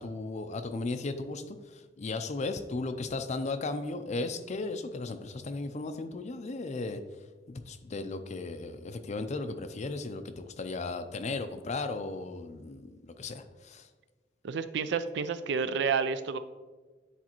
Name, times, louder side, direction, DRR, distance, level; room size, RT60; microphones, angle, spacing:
voice 1, 0.0-7.0 7.5-13.9, left 3 dB, 40° left, 9 dB, 0.4 m, -36 dB
voice 2, 14.4-16.4, right 5 dB, 65° right, 12 dB, 0.4 m, -30 dB
9.8 x 4.1 x 3.0 m, 1.3 s
head